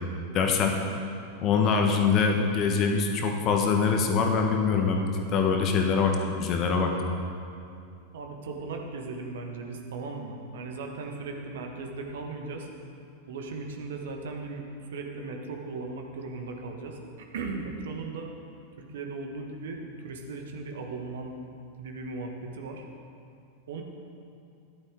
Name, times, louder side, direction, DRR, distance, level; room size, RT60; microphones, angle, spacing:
voice 1, 0.3-0.8 1.4-6.9, left 5 dB, 35° left, 3 dB, 1.3 m, -24 dB
voice 2, 8.1-12.7 13.3-18.3 18.8-21.3 21.8-22.9 23.7-23.8, right 3 dB, 60° right, 3 dB, 1.4 m, -37 dB
13.5 x 11.5 x 3.8 m, 2.5 s
figure-of-eight pair, 90°, 0 cm